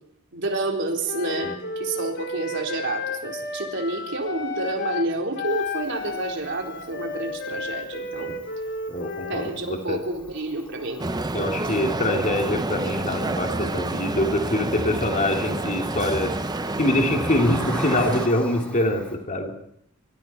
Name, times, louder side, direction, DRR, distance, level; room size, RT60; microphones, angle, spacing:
voice 1, 0.3-8.3 9.3-11.0, right 2 dB, 60° right, 1 dB, 4.2 m, -29 dB
Wind instrument woodwind instrument, 1.0-5.1 5.3-9.5, left 3 dB, 55° left, 2.9 m, -32 dB
Cricket, 5.5-19.2, equal, 5° left, 5.1 m, -42 dB
voice 2, 8.9-10.0 11.3-16.3 16.8-19.5, left 1 dB, 40° left, 2 dB, 3.1 m, -24 dB
sound 1, 11.0-18.3, right 2 dB, 20° right, 0.8 m, -28 dB
25.5 x 25.0 x 4.4 m, 0.72 s
head